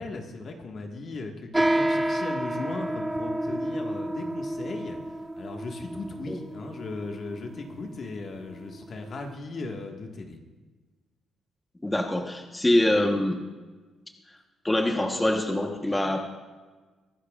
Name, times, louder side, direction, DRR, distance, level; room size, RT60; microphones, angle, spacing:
voice 1, 0.0-5.0 5.3-10.4, left 3 dB, 50° left, 2 dB, 1.8 m, -37 dB
sound 1, 1.5-9.3, right 1 dB, 10° right, 0.6 m, -30 dB
voice 2, 11.8-13.4 14.6-16.3, left 1 dB, 15° left, 3 dB, 1.2 m, -24 dB
23.5 x 12.0 x 2.5 m, 1.3 s
cardioid pair, 90°, 0 cm